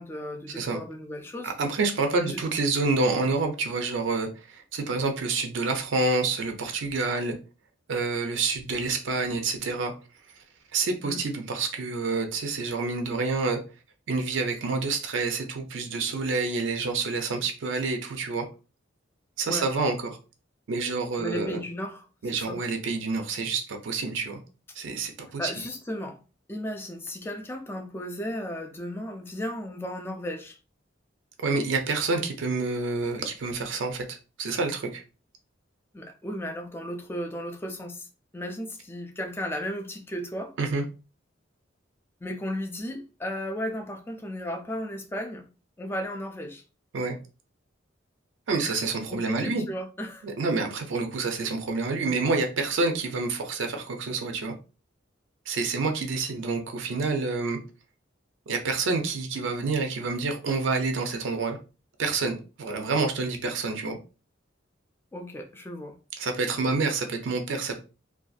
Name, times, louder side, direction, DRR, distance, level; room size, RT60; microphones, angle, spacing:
voice 1, 0.0-1.5 2.2-2.4 11.0-11.2 19.5-19.7 21.2-22.1 22.3-22.6 25.4-26.2 26.5-30.6 35.9-38.1 38.3-40.5 42.2-45.5 45.8-46.6 49.1-50.3 65.1-66.0, equal, 10° left, 0.3 m, -35 dB
voice 2, 1.4-7.4 7.9-9.9 10.7-13.6 14.1-18.5 19.4-20.2 20.7-21.6 22.2-24.4 24.7-25.5 31.4-35.0 40.6-40.8 46.9-47.2 48.5-49.7 50.2-54.5 55.5-57.6 58.5-61.6 62.0-64.0 66.2-67.8, right 3 dB, 75° right, 0.4 m, -28 dB
2.6 x 2.3 x 2.3 m
head